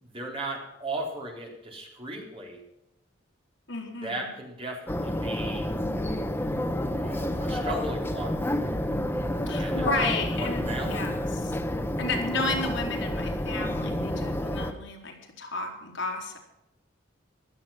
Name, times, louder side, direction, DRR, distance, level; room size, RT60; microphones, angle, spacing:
voice 1, 0.0-2.6 4.0-5.7 6.9-8.8 9.6-9.9 10.4-11.0, right 1 dB, 25° right, 0 dB, 4.0 m, -36 dB
voice 2, 3.7-4.3 9.5-11.6 12.0-16.4, left 3 dB, 65° left, 1 dB, 3.9 m, -32 dB
sound 1, 4.9-14.7, left 1 dB, 10° left, 1.0 m, -29 dB
16.0 x 12.5 x 5.9 m, 0.87 s
head